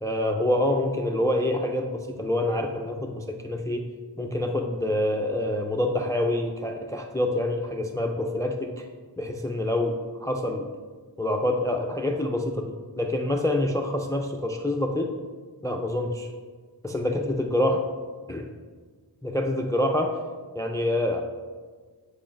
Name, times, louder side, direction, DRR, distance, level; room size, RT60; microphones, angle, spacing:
voice 1, 0.0-3.9 4.2-8.9 9.2-10.7 11.2-15.1 15.6-16.3 16.8-17.8 18.3-18.5 19.2-20.2 20.5-21.2, left 1 dB, 10° left, 4 dB, 0.4 m, -26 dB
8.8 x 4.8 x 2.5 m, 1.5 s
wide cardioid pair, 60°, 44 cm